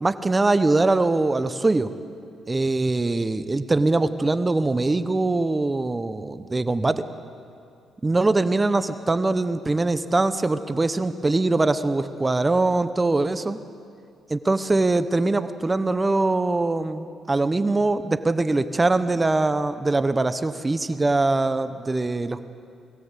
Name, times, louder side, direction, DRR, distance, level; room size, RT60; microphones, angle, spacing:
voice 1, 0.0-1.9 2.5-7.0 8.0-13.6 14.3-22.5, right 2 dB, 20° right, 12 dB, 0.8 m, -22 dB
21.5 x 16.0 x 8.1 m, 2.5 s
cardioid pair, 90°, 0 cm